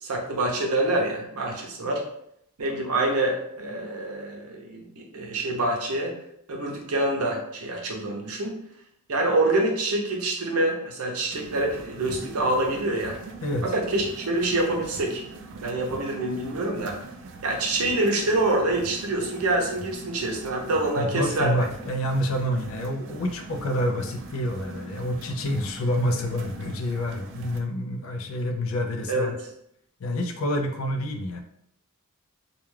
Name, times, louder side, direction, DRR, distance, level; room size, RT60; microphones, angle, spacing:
voice 1, 0.0-2.0 2.6-6.1 6.5-8.6 9.1-13.2 13.6-15.2 15.6-17.0 17.4-21.5 29.1-29.5, right 2 dB, 90° right, 0 dB, 0.6 m, -26 dB
sound 1, 11.3-27.6, right 3 dB, 55° right, 0.3 m, -42 dB
voice 2, 21.0-29.4 30.0-31.4, equal, 65° left, 4 dB, 0.4 m, -28 dB
2.3 x 2.2 x 3.2 m, 0.73 s
head